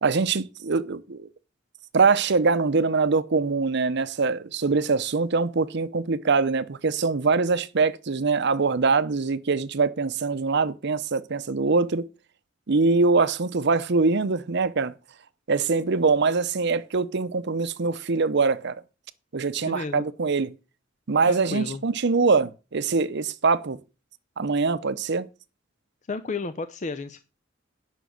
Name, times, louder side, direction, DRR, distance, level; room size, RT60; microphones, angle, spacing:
voice 1, 0.0-1.3 1.9-12.0 12.7-14.9 15.5-18.8 19.3-20.5 21.1-23.8 24.4-25.3, right 4 dB, 60° right, 0.7 m, -23 dB
voice 2, 19.6-20.1 21.3-21.8 26.1-27.2, left 3 dB, 40° left, 0.6 m, -32 dB
9.2 x 6.2 x 6.4 m
head